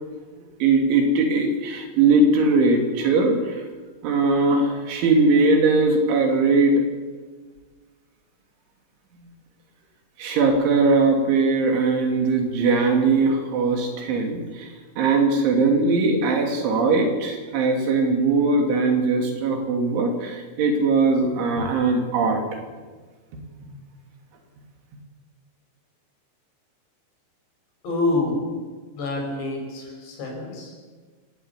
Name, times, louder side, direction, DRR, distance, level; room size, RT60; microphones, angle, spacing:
voice 1, 0.6-3.6 4.0-6.8 10.2-14.7 15.0-22.4 23.7-23.8, right 3 dB, 85° right, 3 dB, 5.4 m, -20 dB
voice 2, 27.8-28.4 28.9-30.7, left 2 dB, 65° left, 1 dB, 8.0 m, -27 dB
25.0 x 18.0 x 8.4 m, 1.4 s
omnidirectional pair, 5.3 m